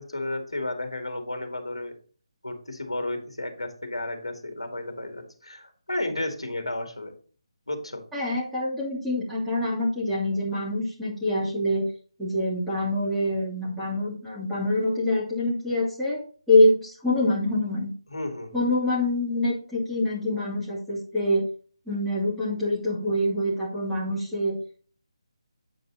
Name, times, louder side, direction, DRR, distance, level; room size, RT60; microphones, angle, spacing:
voice 1, 0.0-1.9 2.4-7.1 7.7-8.0 18.1-18.7, left 1 dB, 75° left, 6 dB, 2.2 m, -33 dB
voice 2, 8.1-11.9 12.2-16.2 16.5-17.9 18.5-21.4 21.9-24.6, left 1 dB, 5° right, -8 dB, 2.8 m, -25 dB
8.9 x 5.4 x 3.9 m, 0.42 s
figure-of-eight pair, 150°, 3 cm